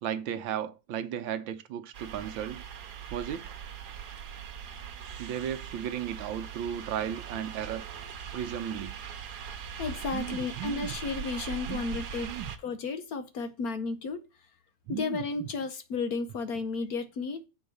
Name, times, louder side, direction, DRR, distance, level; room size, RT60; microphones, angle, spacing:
voice 1, 0.0-2.6 3.1-3.6 5.2-7.9 8.3-9.0 10.1-10.9 11.7-11.8 12.2-12.5 14.9-15.2, right 9 dB, 80° right, 1.5 m, -35 dB
sound 1, 1.9-12.6, right 7 dB, 60° right, 1.4 m, -41 dB
voice 2, 9.8-12.3 12.6-14.2 14.9-17.5, left 4 dB, 60° left, 1.1 m, -33 dB
7.0 x 4.8 x 6.7 m
omnidirectional pair, 2.1 m